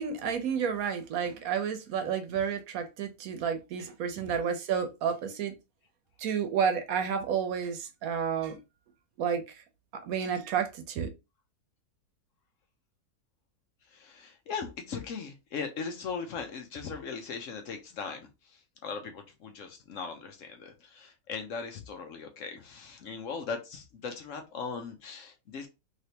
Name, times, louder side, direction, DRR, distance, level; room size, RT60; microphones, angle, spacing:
voice 1, 0.0-5.5 6.2-8.6 9.2-9.4 10.0-11.1, right 7 dB, 70° right, 1.1 m, -30 dB
voice 2, 13.9-25.7, left 5 dB, 65° left, 0.9 m, -39 dB
3.3 x 2.8 x 2.8 m
omnidirectional pair, 1.6 m